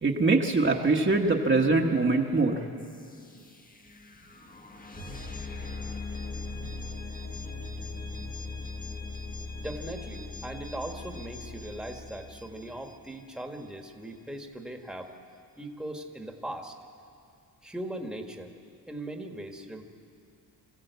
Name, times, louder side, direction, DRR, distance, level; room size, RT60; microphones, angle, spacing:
voice 1, 0.0-2.6, right 3 dB, 30° right, 0 dB, 1.3 m, -23 dB
sound 1, 2.8-13.6, left 3 dB, 20° left, 1.3 m, -40 dB
voice 2, 9.5-15.1 15.6-16.7 17.6-18.5 18.9-19.8, right 1 dB, ahead, 3 dB, 1.5 m, -39 dB
24.0 x 14.5 x 8.2 m, 2.3 s
cardioid pair, 115°, 39 cm